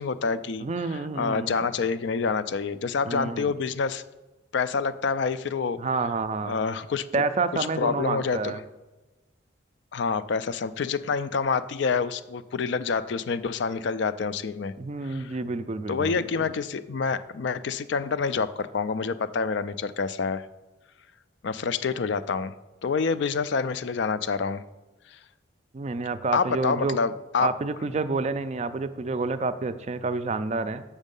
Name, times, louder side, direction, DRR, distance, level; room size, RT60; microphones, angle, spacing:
voice 1, 0.0-0.7 1.2-4.0 4.5-5.8 6.4-7.0 7.8-8.5 9.9-14.7 15.1-15.4 15.9-20.4 21.4-22.5 22.8-24.6 26.3-27.5, left 5 dB, 60° left, 14 dB, 0.4 m, -27 dB
voice 2, 0.6-1.7 3.1-3.5 5.8-6.6 7.1-8.6 14.8-16.5 25.7-27.0 27.4-30.8, right 3 dB, 35° right, 11 dB, 0.4 m, -29 dB
7.2 x 6.4 x 5.3 m, 1.1 s
head